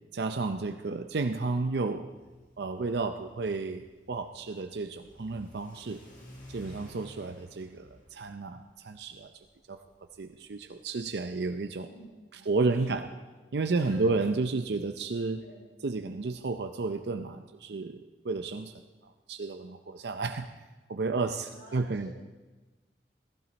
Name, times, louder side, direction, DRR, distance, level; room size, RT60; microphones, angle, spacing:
voice 1, 0.1-2.1 2.6-6.0 6.5-9.3 9.7-9.8 10.2-11.9 12.3-13.1 13.5-15.4 15.8-18.7 19.3-20.5 20.9-22.1, right 3 dB, 75° right, 7 dB, 0.6 m, -32 dB
Car / Accelerating revving vroom, 2.1-11.5, equal, 50° left, 4.7 m, -54 dB
voice 2, 11.8-13.0 13.7-14.1 15.4-15.7 21.5-22.1, right 1 dB, 75° left, -3 dB, 3.3 m, -50 dB
16.5 x 15.0 x 4.1 m, 1.2 s
head